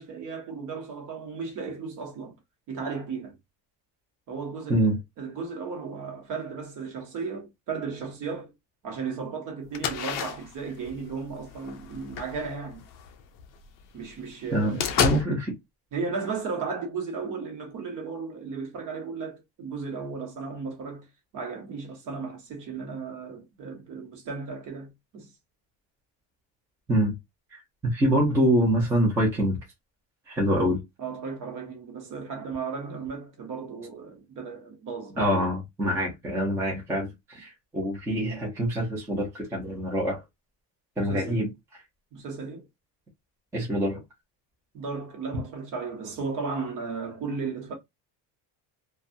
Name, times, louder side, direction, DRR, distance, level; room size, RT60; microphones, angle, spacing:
voice 1, 0.0-2.3 2.7-3.4 4.3-8.5 8.8-12.8 13.9-15.3 15.9-21.1 21.3-25.3 31.0-35.5 41.0-41.4 42.1-42.6 44.7-47.7, right 5 dB, 45° right, 1.0 m, -35 dB
sound 1, 9.7-13.5 14.0-14.1 14.4-15.2, left 9 dB, 50° left, 0.5 m, -30 dB
voice 2, 14.5-15.5 26.9-27.1 27.5-29.6 30.3-30.8 35.2-40.2 41.0-41.5 43.5-44.0, equal, 5° right, 0.5 m, -25 dB
2.6 x 2.2 x 2.5 m
cardioid pair, 175°, 45 cm